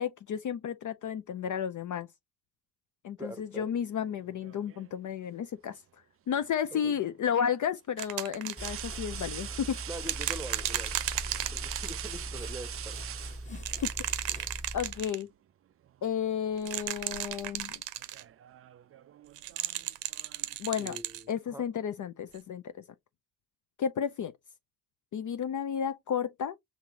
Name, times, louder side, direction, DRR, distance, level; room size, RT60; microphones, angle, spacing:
voice 1, 0.0-2.1 3.0-5.8 6.3-9.8 13.5-13.6 14.7-15.3 16.0-17.8 20.6-21.0 21.3-22.7 23.8-24.3 25.1-26.6, left 8 dB, 40° left, 0.5 m, -32 dB
voice 2, 3.2-3.7 6.7-6.9 9.9-11.1 11.5-13.0 20.7-21.6, right 1 dB, 5° right, 0.9 m, -43 dB
sound 1, 4.1-5.0 6.8-6.9 8.4-13.9 15.1-15.3 15.7-16.5 16.7-17.1 18.0-20.6, right 11 dB, 30° right, 0.4 m, -43 dB
sound 2, 8.0-8.9 10.1-12.2 13.6-15.2 16.6-18.2 19.4-21.2 22.4-22.5, right 14 dB, 65° right, 0.7 m, -35 dB
sound 3, 8.6-15.1, right 1 dB, 15° left, 1.4 m, -41 dB
5.8 x 2.9 x 2.8 m
hypercardioid pair, 45°, 47 cm